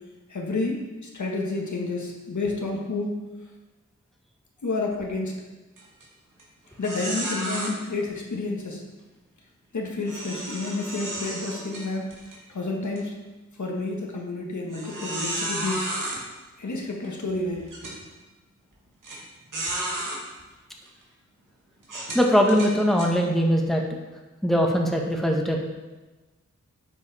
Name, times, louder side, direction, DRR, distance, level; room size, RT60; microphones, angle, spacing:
voice 1, 0.3-3.1 4.6-5.4 6.8-8.8 9.7-12.0 12.5-13.1 13.6-16.1 16.6-17.6, left 3 dB, 70° left, -1 dB, 1.5 m, -30 dB
sound 1, 5.8-6.0 6.4-6.5 6.8-7.7 10.0-12.4 12.8-13.0 13.6-13.7 14.7-16.2 17.0-17.1 17.7-18.0 19.0-19.2 19.5-20.2 20.9-21.0 21.8-23.1, right 1 dB, 85° right, 1.8 m, -32 dB
voice 2, 22.1-23.8 24.4-25.7, equal, ahead, 0 dB, 1.3 m, -21 dB
9.8 x 4.9 x 4.2 m, 1.2 s
cardioid pair, 45°, 31 cm